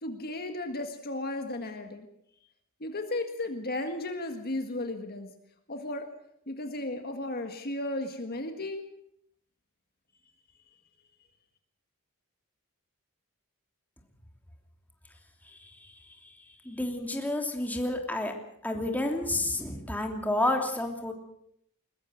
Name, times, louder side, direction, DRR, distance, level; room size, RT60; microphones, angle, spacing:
voice 1, 0.0-2.1 2.8-5.3 5.7-6.1 6.5-8.9, left 2 dB, 45° left, 6 dB, 1.8 m, -34 dB
voice 2, 16.6-18.3 18.6-21.1, left 1 dB, 10° left, 3 dB, 3.0 m, -30 dB
21.5 x 21.0 x 6.5 m, 0.72 s
head